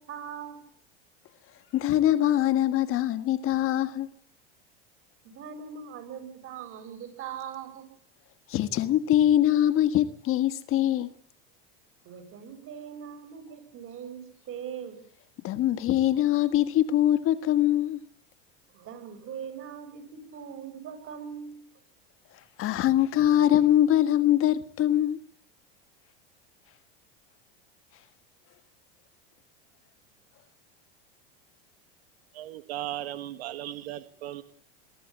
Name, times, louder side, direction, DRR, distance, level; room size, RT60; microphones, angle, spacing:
voice 1, 0.1-0.6 5.3-7.8 12.0-14.2 14.5-15.0 18.7-21.6, right 8 dB, 45° right, 7.9 m, -40 dB
voice 2, 1.7-4.1 8.5-11.1 15.4-18.0 22.6-25.2, left 12 dB, 45° left, 1.6 m, -23 dB
voice 3, 32.3-34.4, right 13 dB, 80° right, 1.8 m, -36 dB
23.0 x 14.0 x 8.6 m
supercardioid pair, 115°, 30 cm